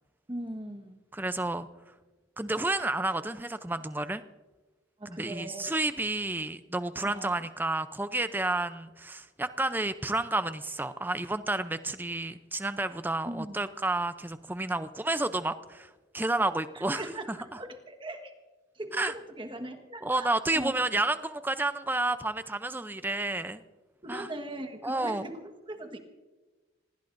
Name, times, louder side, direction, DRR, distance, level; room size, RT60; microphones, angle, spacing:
voice 1, 0.3-1.0 5.0-5.8 7.0-7.3 13.2-13.6 16.7-18.3 18.7-20.7 24.0-26.0, right 1 dB, 25° right, 5 dB, 1.4 m, -39 dB
voice 2, 1.1-1.7 2.4-4.2 5.1-17.6 18.9-19.1 20.0-23.6 24.1-24.3 24.8-25.2, right 2 dB, 10° right, 11 dB, 0.5 m, -31 dB
26.5 x 20.0 x 2.6 m, 1.2 s
head